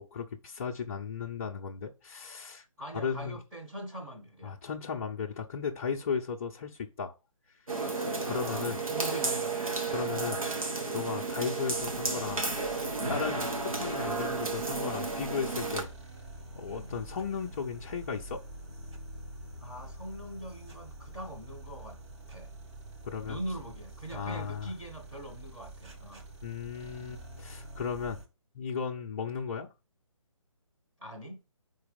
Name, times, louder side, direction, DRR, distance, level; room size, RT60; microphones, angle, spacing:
voice 1, 0.0-2.6 2.9-3.4 4.4-7.1 8.2-8.8 9.9-12.5 13.1-15.9 16.5-18.4 23.0-23.4 24.1-24.7 26.4-28.2 28.5-29.7, left 6 dB, 25° left, 0.6 m, -35 dB
voice 2, 2.8-4.6 7.7-10.3 11.1-11.3 13.2-13.5 16.7-16.9 19.6-22.0 22.3-22.5 23.2-26.2 31.0-31.4, right 1 dB, 15° right, 1.0 m, -43 dB
sound 1, 7.7-15.8, right 3 dB, 85° right, 1.7 m, -32 dB
sound 2, 11.8-28.3, right 1 dB, 55° right, 2.0 m, -47 dB
4.8 x 4.0 x 5.1 m
figure-of-eight pair, 150°, 17 cm